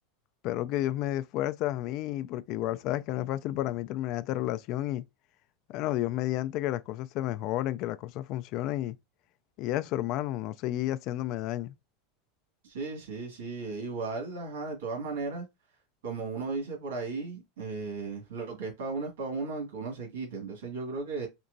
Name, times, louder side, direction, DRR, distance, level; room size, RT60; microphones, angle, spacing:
voice 1, 0.4-5.0 5.7-9.0 9.6-11.7, left 14 dB, 55° left, 0.3 m, -31 dB
voice 2, 12.6-15.4 16.0-21.3, right 4 dB, 90° right, 1.8 m, -35 dB
4.4 x 2.9 x 2.6 m
supercardioid pair, 125°, 0 cm